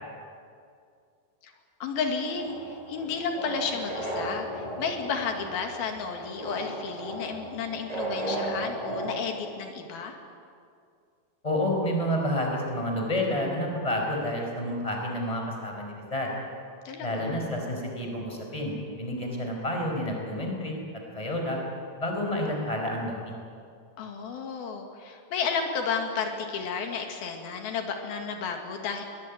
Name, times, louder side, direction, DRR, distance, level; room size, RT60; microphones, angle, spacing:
voice 1, 1.8-10.2 16.9-17.3 24.0-29.0, left 5 dB, 85° left, 4 dB, 3.8 m, -32 dB
sound 1, 1.9-9.1, right 1 dB, 10° right, 5.5 m, -35 dB
voice 2, 11.4-16.3 17.0-21.6 22.0-23.3, left 1 dB, 10° left, 1 dB, 4.7 m, -29 dB
22.5 x 20.5 x 9.6 m, 2.3 s
omnidirectional pair, 4.2 m